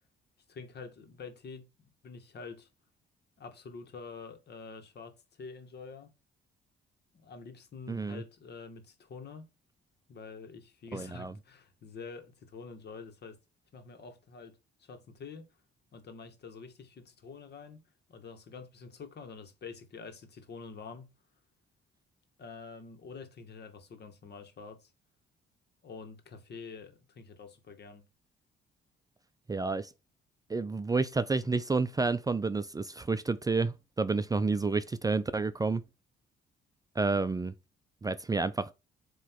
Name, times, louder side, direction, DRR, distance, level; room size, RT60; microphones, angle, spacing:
voice 1, 0.5-1.6 2.0-2.7 3.4-6.1 7.2-9.4 10.1-13.4 13.7-15.4 15.9-17.8 18.1-21.0 22.4-24.9 25.8-28.1, left 5 dB, 55° left, 1.7 m, -47 dB
voice 2, 7.9-8.2 10.9-11.3 29.5-29.9 30.5-35.8 37.0-37.5 38.0-38.7, right 3 dB, 20° right, 0.4 m, -30 dB
7.8 x 3.1 x 4.6 m
cardioid pair, 90°, 20 cm